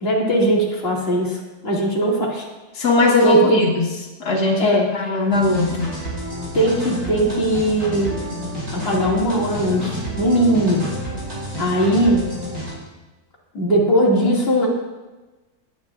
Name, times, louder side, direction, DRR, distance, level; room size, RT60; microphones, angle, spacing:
voice 1, 0.0-2.4 3.2-3.6 4.6-5.1 6.5-8.2 8.7-10.9 11.6-12.3 13.5-14.7, right 1 dB, 40° left, -4 dB, 2.4 m, -19 dB
voice 2, 2.7-3.9 4.2-5.9, left 2 dB, 90° left, -2 dB, 1.9 m, -19 dB
sound 1, 5.3-12.7, equal, 70° right, 4.6 m, -30 dB
17.5 x 9.4 x 2.4 m, 1.1 s
omnidirectional pair, 1.6 m